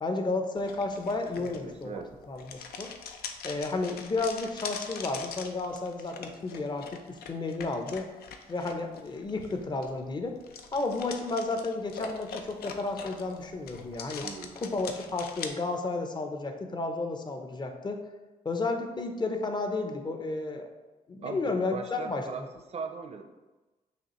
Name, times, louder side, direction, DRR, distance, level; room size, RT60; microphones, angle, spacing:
voice 1, 0.0-2.0 2.3-2.9 3.4-8.1 8.5-10.4 10.7-14.3 14.6-18.0 18.4-20.7 21.1-22.5, left 3 dB, 30° left, 5 dB, 0.6 m, -32 dB
sound 1, 0.6-15.5, left 6 dB, 80° left, 0.4 m, -43 dB
voice 2, 1.3-2.1 14.2-14.6 21.2-22.4 22.7-23.2, right 5 dB, 40° right, 6 dB, 0.5 m, -39 dB
5.8 x 2.4 x 3.0 m, 1.2 s
cardioid pair, 85°, 16 cm